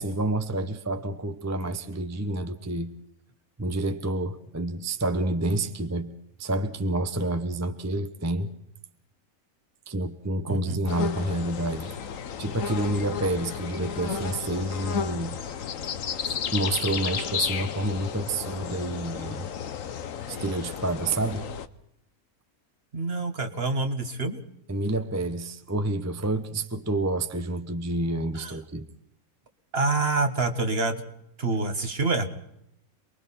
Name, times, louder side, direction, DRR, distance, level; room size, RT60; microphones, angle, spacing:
voice 1, 0.0-2.9 3.6-8.5 9.9-11.9 12.4-15.4 16.5-19.5 20.3-21.5 24.7-28.9, right 2 dB, 15° right, 8 dB, 0.8 m, -29 dB
voice 2, 10.5-10.8 22.9-24.4 28.3-28.5 29.7-31.0 31.4-32.3, right 3 dB, 40° right, 7 dB, 1.9 m, -26 dB
sound 1, 10.9-21.7, left 7 dB, 60° left, 1.3 m, -33 dB
28.0 x 21.5 x 4.3 m, 0.78 s
omnidirectional pair, 1.6 m